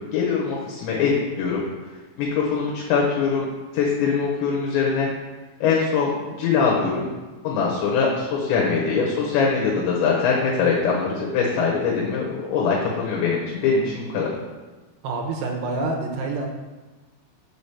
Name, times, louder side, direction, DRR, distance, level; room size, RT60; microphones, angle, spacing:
voice 1, 0.0-1.6 2.2-3.5 3.7-5.1 5.6-7.1 7.4-14.3, left 5 dB, 75° left, -3 dB, 3.2 m, -22 dB
voice 2, 15.0-16.5, right 3 dB, 75° right, 1 dB, 3.2 m, -27 dB
7.3 x 5.0 x 7.0 m, 1.2 s
omnidirectional pair, 5.7 m